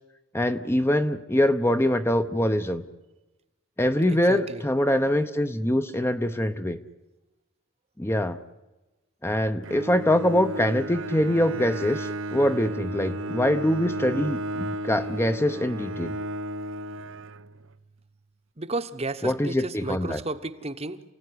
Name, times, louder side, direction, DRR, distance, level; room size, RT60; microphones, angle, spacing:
voice 1, 0.3-2.8 3.8-6.8 8.0-8.4 9.2-16.1 19.2-20.2, left 1 dB, 10° left, 9 dB, 0.9 m, -24 dB
voice 2, 4.1-4.6 18.6-21.0, right 2 dB, 30° right, 10 dB, 1.1 m, -33 dB
Bowed string instrument, 9.6-17.8, right 1 dB, 65° right, 0.8 m, -34 dB
29.0 x 16.5 x 9.9 m, 1.1 s
head